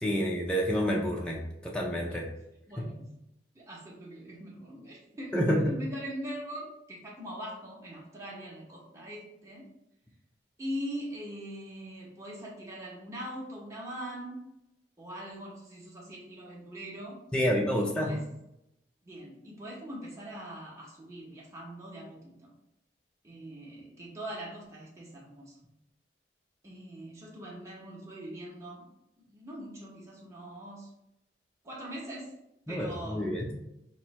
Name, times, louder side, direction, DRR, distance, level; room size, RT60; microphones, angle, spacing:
voice 1, 0.0-2.2 5.3-5.7 17.3-18.1 32.7-33.5, equal, 5° left, -2 dB, 0.4 m, -28 dB
voice 2, 2.7-3.0 3.5-9.7 10.6-14.4 15.0-17.2 17.8-18.2 19.1-22.5 23.2-25.5 26.6-28.9 29.3-30.9 31.6-32.3 32.7-33.3, equal, 15° right, -5 dB, 0.8 m, -42 dB
3.0 x 2.6 x 4.1 m, 0.85 s
head